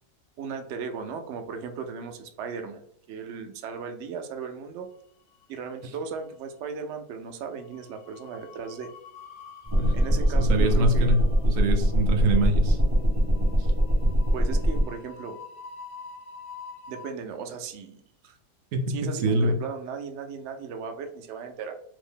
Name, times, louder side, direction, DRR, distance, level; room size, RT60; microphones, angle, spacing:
voice 1, 0.4-2.8 3.1-4.9 5.5-8.9 9.9-11.1 14.3-15.4 16.9-18.0 18.9-21.7, right 5 dB, 90° right, 5 dB, 0.6 m, -36 dB
sound 1, 5.0-5.8 6.1-6.4 7.5-17.1, left 5 dB, 80° left, 1.1 m, -47 dB
sound 2, 9.7-14.8, equal, 20° right, 0.7 m, -22 dB
voice 2, 9.7-11.2 11.4-12.8 14.0-14.1 18.7-19.6, right 1 dB, 65° right, 4 dB, 0.9 m, -25 dB
2.8 x 2.6 x 3.6 m, 0.67 s
omnidirectional pair, 1.7 m